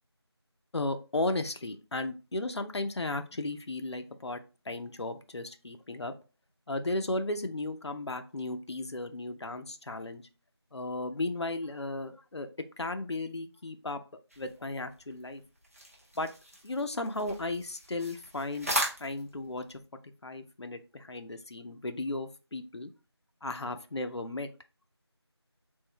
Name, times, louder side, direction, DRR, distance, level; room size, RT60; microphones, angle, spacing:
voice 1, 0.7-4.4 4.7-6.1 6.7-10.2 10.7-12.5 12.8-14.0 14.4-15.4 16.2-16.3 16.6-18.7 19.0-19.8 20.2-22.9 23.4-24.5, left 2 dB, 75° left, 8 dB, 0.5 m, -35 dB
sound 1, 14.3-19.8, right 1 dB, 30° right, 0.8 m, -38 dB
3.6 x 2.6 x 3.0 m, 0.32 s
figure-of-eight pair, 175°, 14 cm